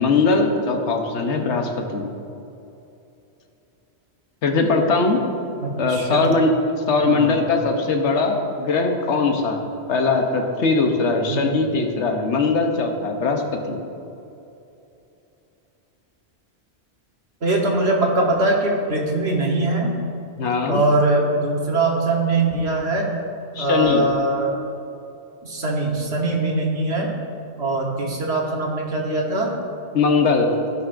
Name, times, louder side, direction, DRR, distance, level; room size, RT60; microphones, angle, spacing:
voice 1, 0.0-2.1 4.4-5.2 5.8-6.6 6.9-13.8 20.4-20.8 23.5-24.0 29.9-30.5, left 3 dB, 85° left, 3 dB, 1.2 m, -20 dB
voice 2, 5.6-6.3 7.0-7.3 11.3-11.5 17.4-19.9 20.7-23.1 23.6-24.5 25.4-27.1 27.6-29.5, right 2 dB, 70° right, -1 dB, 1.5 m, -22 dB
16.0 x 5.6 x 2.5 m, 2.8 s
omnidirectional pair, 1.2 m